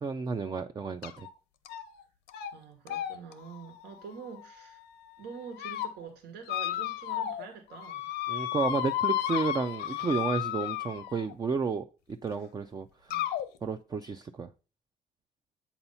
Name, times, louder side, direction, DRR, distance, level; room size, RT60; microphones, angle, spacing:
voice 1, 0.0-1.3 8.3-13.2 13.6-14.5, right 5 dB, 25° right, 0.4 m, -32 dB
sound 1, 1.0-1.3 1.7-2.0 2.3-2.5 2.9-4.8 5.3-5.9 6.5-7.5 7.7-11.3 12.3-12.4 13.1-13.4, left 12 dB, 80° left, 0.8 m, -33 dB
voice 2, 2.5-4.8 5.2-8.1 13.1-13.3, right 6 dB, 80° right, 1.5 m, -45 dB
7.9 x 2.9 x 5.5 m
cardioid pair, 110°, 17 cm